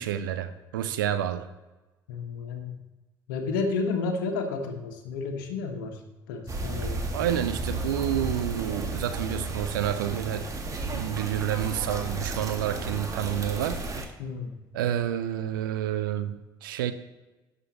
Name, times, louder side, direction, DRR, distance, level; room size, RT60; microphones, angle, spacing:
voice 1, 0.0-1.5 7.1-10.5 10.8-13.8 14.7-16.9, right 11 dB, 75° right, 10 dB, 0.7 m, -29 dB
voice 2, 2.1-2.7 3.3-6.0 6.3-7.1 14.2-14.5, left 4 dB, 70° left, 5 dB, 1.5 m, -31 dB
sound 1, 6.5-14.0, right 2 dB, 30° right, 1.8 m, -33 dB
17.0 x 6.8 x 3.0 m, 1.1 s
figure-of-eight pair, 55°, 11 cm